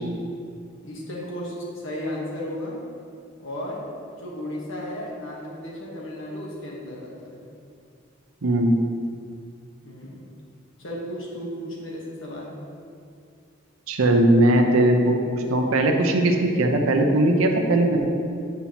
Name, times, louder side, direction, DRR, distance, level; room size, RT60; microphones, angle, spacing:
voice 1, 0.8-2.8 3.4-3.8 4.1-7.3 9.8-10.3 10.8-12.5, left 1 dB, 65° left, -4 dB, 1.3 m, -34 dB
voice 2, 8.4-8.7 13.9-18.1, right 1 dB, 85° right, 3 dB, 0.7 m, -19 dB
7.2 x 5.6 x 2.9 m, 2.4 s
head